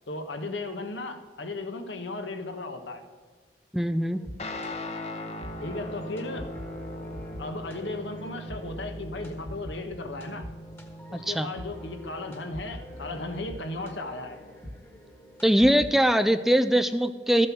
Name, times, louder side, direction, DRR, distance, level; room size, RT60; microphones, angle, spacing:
voice 1, 0.1-3.0 5.6-6.5 7.4-10.5 11.1-14.4, left 2 dB, 75° left, 6 dB, 1.3 m, -36 dB
voice 2, 3.7-4.2 11.1-11.5 15.4-17.5, equal, ahead, 10 dB, 0.3 m, -22 dB
sound 1, 4.0-16.3, equal, 15° left, 1.4 m, -44 dB
Guitar, 4.4-13.2, left 1 dB, 35° left, 1.0 m, -40 dB
13.5 x 7.6 x 6.1 m, 1.5 s
head